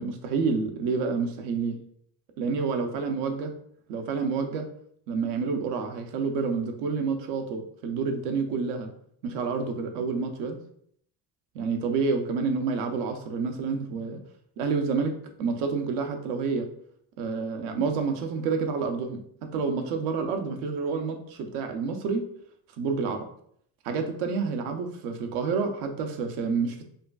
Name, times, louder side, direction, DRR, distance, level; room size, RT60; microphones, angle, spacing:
voice 1, 0.0-1.8 2.4-3.5 3.9-4.7 5.1-8.9 9.2-10.6 11.5-14.2 14.6-16.7 17.2-22.2 22.8-23.3 23.8-26.8, right 5 dB, 80° right, 5 dB, 0.7 m, -29 dB
5.0 x 2.2 x 2.4 m, 0.66 s
supercardioid pair, 80°, 41 cm